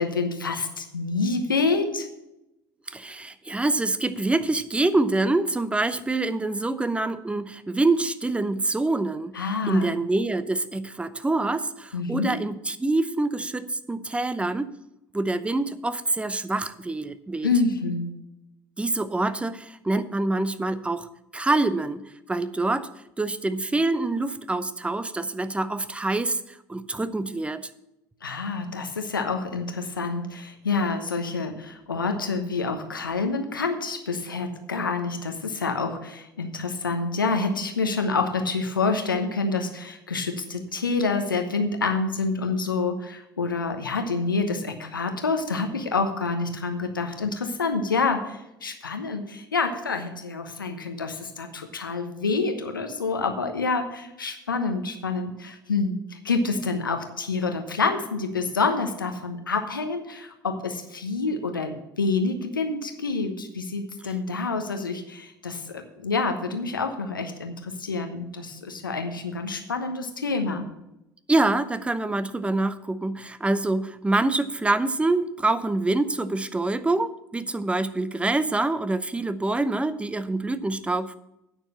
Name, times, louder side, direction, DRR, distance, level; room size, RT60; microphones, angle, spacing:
voice 1, 0.0-2.1 9.3-9.9 11.9-12.4 17.4-18.2 28.2-70.6, left 4 dB, 85° left, 7 dB, 1.0 m, -27 dB
voice 2, 2.9-14.7 15.1-17.5 18.8-21.1 21.3-22.0 22.3-22.9 23.2-26.4 26.7-27.7 71.3-81.2, right 2 dB, 10° right, 13 dB, 0.7 m, -26 dB
9.0 x 6.5 x 7.5 m, 0.88 s
figure-of-eight pair, 65°, 11 cm